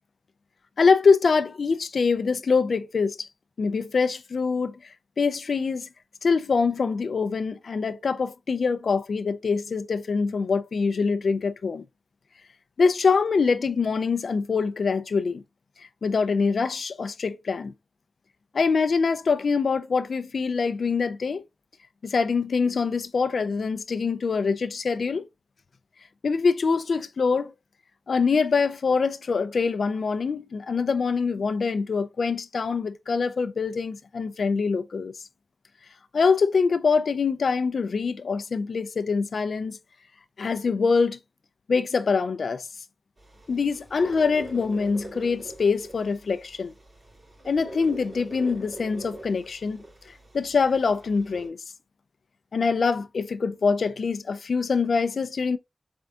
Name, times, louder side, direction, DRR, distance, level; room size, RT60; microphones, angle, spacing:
voice 1, 0.8-3.3 3.6-4.7 5.2-5.9 6.2-11.8 12.8-15.4 15.8-17.7 18.5-21.4 22.0-25.3 26.2-27.5 28.1-35.1 36.1-39.8 40.4-41.2 41.7-42.7 43.5-46.7 47.5-49.8 50.3-51.6 52.5-55.6, left 5 dB, 90° left, 0.4 m, -24 dB
sound 1, 43.2-51.5, right 1 dB, 45° right, 2.9 m, -44 dB
4.4 x 3.5 x 2.4 m
cardioid pair, 55°, 0 cm